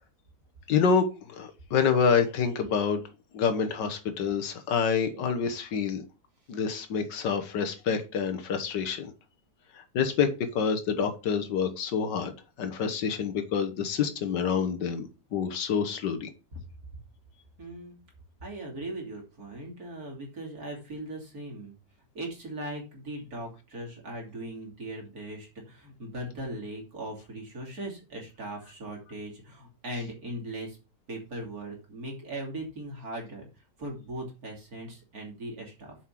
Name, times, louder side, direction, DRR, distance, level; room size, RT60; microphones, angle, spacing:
voice 1, 0.7-3.0 3.3-6.1 6.5-9.1 9.7-12.3 12.6-16.3, left 6 dB, 85° left, 8 dB, 1.8 m, -27 dB
voice 2, 17.6-18.0 18.4-21.8 22.2-30.8 31.1-33.5 33.8-36.0, right 1 dB, 60° right, -1 dB, 3.3 m, -39 dB
7.3 x 5.5 x 5.8 m, 0.30 s
omnidirectional pair, 1.8 m